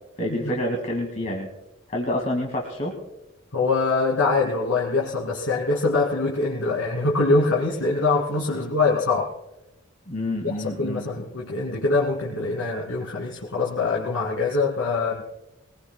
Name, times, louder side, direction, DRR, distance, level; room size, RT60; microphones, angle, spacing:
voice 1, 0.2-1.5 1.9-3.0 10.1-11.1, left 1 dB, 35° left, 1 dB, 1.9 m, -28 dB
voice 2, 3.5-9.3 10.4-15.2, left 3 dB, 85° left, -5 dB, 2.4 m, -23 dB
22.5 x 19.5 x 2.2 m, 0.96 s
head